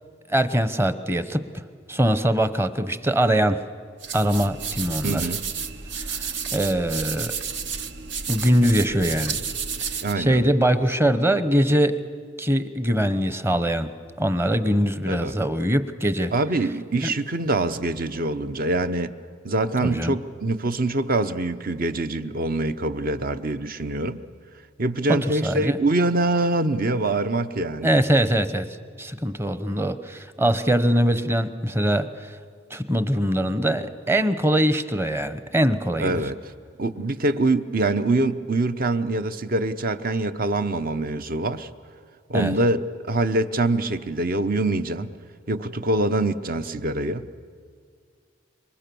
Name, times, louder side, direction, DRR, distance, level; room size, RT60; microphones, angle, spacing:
voice 1, 0.3-1.4 1.9-3.6 4.1-5.3 6.0-7.3 8.3-9.4 10.2-12.0 12.4-13.9 14.2-16.3 17.0-17.1 19.8-20.2 25.1-25.8 27.8-28.6 29.0-32.1 32.7-36.2 42.3-42.5, equal, 15° right, 0.9 m, -22 dB
sound 1, 4.0-10.1, right 6 dB, 70° right, 1.1 m, -31 dB
voice 2, 5.0-5.5 10.0-10.4 15.1-15.3 16.3-19.1 19.4-24.2 24.8-28.0 36.0-36.5 36.8-41.7 42.3-45.1 45.5-47.3, right 2 dB, 50° right, 0.9 m, -24 dB
26.5 x 24.0 x 7.0 m
head